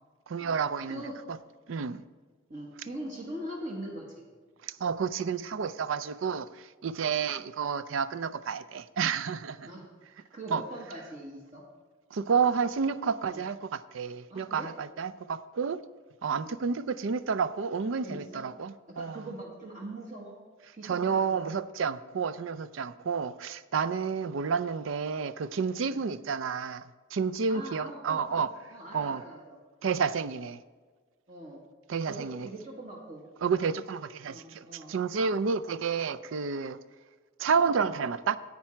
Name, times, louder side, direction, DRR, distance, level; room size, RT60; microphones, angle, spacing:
voice 1, 0.3-1.0 1.3-1.4 1.7-2.0 4.6-9.7 10.5-10.6 12.1-15.8 16.2-19.2 20.8-28.5 28.9-29.2 29.8-30.6 31.9-32.5 33.4-36.8 37.4-38.4, right 6 dB, 80° right, 15 dB, 0.4 m, -30 dB
voice 2, 2.5-4.2 9.6-9.8 10.1-11.6 13.3-13.4 14.3-14.7 16.4-16.7 18.0-18.4 18.9-20.3 20.7-21.5 25.8-26.2 27.5-28.4 28.7-29.6 31.3-31.6 32.0-33.2 34.2-34.9, right 1 dB, 40° right, -2 dB, 1.5 m, -42 dB
10.5 x 8.6 x 4.4 m, 1.4 s
head